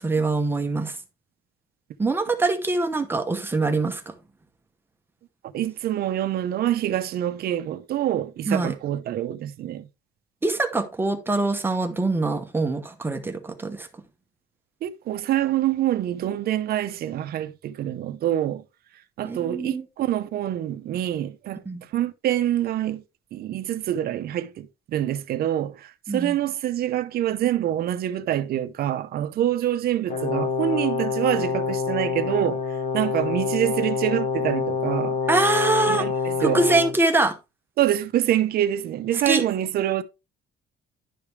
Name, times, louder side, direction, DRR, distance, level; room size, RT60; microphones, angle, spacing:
voice 1, 0.0-1.0 2.0-4.1 8.5-8.7 10.4-13.9 19.2-19.8 21.7-21.8 26.1-26.4 35.3-36.1 36.4-37.4 39.3-39.4, right 2 dB, 10° right, 0.9 m, -24 dB
voice 2, 5.5-9.9 14.8-18.6 19.2-21.6 21.9-23.0 23.3-32.6 32.9-35.2 35.9-36.6 37.8-40.0, right 12 dB, 55° right, 0.8 m, -26 dB
Brass instrument, 30.1-37.0, left 5 dB, 40° left, 0.8 m, -26 dB
11.0 x 5.0 x 3.3 m
cardioid pair, 170°, 19 cm